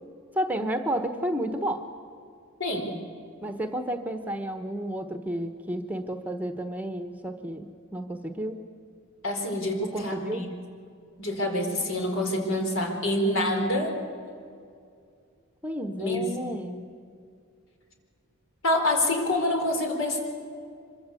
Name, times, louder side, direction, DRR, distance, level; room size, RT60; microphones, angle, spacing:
voice 1, 0.3-1.8 3.4-8.6 9.8-10.5 15.6-16.8, right 1 dB, 5° right, 7 dB, 1.0 m, -31 dB
voice 2, 9.2-10.5 11.2-13.9 16.0-16.5 18.6-20.2, left 1 dB, 70° left, 2 dB, 4.6 m, -26 dB
25.5 x 23.0 x 8.4 m, 2.3 s
head